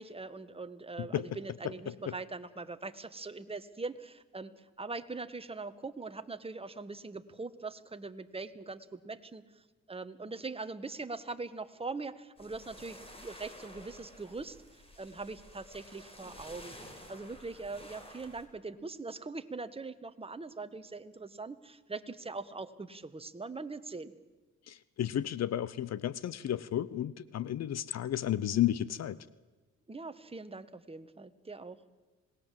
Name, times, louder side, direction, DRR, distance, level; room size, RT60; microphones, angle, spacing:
voice 1, 0.0-9.4 9.9-14.6 15.0-16.7 17.1-24.1 29.9-31.8, right 3 dB, 20° right, 10 dB, 1.4 m, -42 dB
sound 1, 12.4-18.5, equal, 20° left, 4.7 m, -52 dB
voice 2, 24.7-29.2, left 11 dB, 60° left, 18 dB, 0.8 m, -32 dB
26.5 x 19.0 x 7.6 m, 1.2 s
cardioid pair, 90°, 30 cm